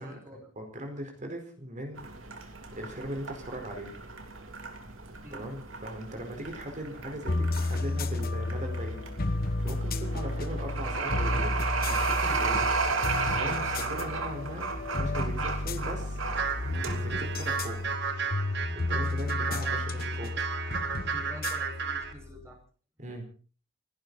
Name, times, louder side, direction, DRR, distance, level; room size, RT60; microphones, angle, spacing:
voice 1, 0.0-0.5 5.2-5.5 19.6-19.9 21.1-22.6, equal, 15° right, 1 dB, 5.4 m, -47 dB
voice 2, 0.6-2.0 2.7-3.9 5.3-9.0 9.3-11.6 11.9-12.7 13.3-14.7 14.9-16.2 16.8-17.8 18.7-20.3 23.0-23.3, right 1 dB, 40° right, 4 dB, 4.6 m, -39 dB
sound 1, 2.0-17.9, right 4 dB, 80° right, 2.9 m, -34 dB
sound 2, 7.3-22.5, left 2 dB, 50° left, 1.1 m, -32 dB
sound 3, 16.3-22.1, right 5 dB, 60° right, 1.8 m, -33 dB
29.5 x 11.5 x 4.1 m, 0.40 s
head